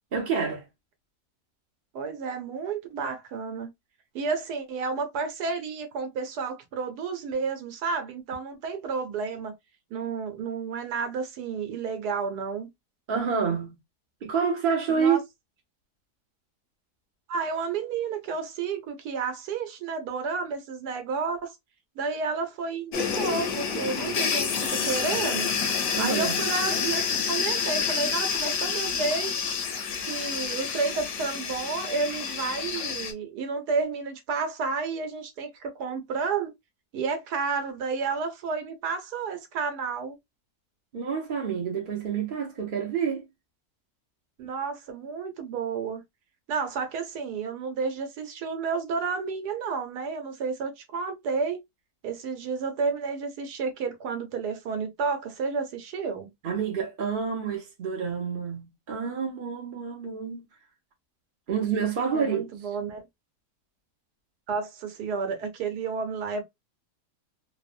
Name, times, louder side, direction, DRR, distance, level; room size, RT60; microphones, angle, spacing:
voice 1, 0.1-0.7 13.1-13.8 14.2-15.2 26.0-26.4 40.9-43.3 56.4-60.5 61.5-62.5, right 6 dB, 55° right, 0.6 m, -28 dB
voice 2, 1.9-3.7 4.1-9.5 9.9-12.7 14.9-15.2 17.3-21.6 22.0-25.5 26.0-29.4 30.1-36.5 36.9-40.2 44.4-46.0 46.5-51.6 52.0-56.3 62.1-63.1 64.5-66.4, right 5 dB, 75° right, 1.3 m, -31 dB
sound 1, 22.9-33.1, left 6 dB, 65° left, 0.8 m, -28 dB
2.9 x 2.1 x 2.4 m
omnidirectional pair, 1.8 m